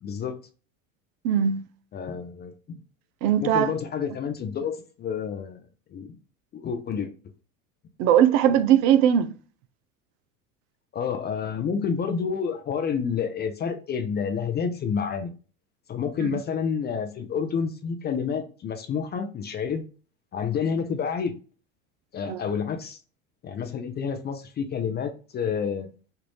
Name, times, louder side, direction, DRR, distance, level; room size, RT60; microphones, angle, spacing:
voice 1, 0.0-0.4 1.9-2.8 3.4-5.6 5.9-6.2 6.5-7.1 10.9-15.3 15.9-19.8 20.3-21.3 22.1-23.0 23.4-25.9, left 6 dB, 25° left, 0.4 m, -29 dB
voice 2, 1.2-1.7 3.2-3.7 8.0-9.3 16.2-16.4 22.2-22.4, right 9 dB, 65° right, 0.6 m, -20 dB
3.3 x 2.5 x 3.0 m
hypercardioid pair, 90°, 43 cm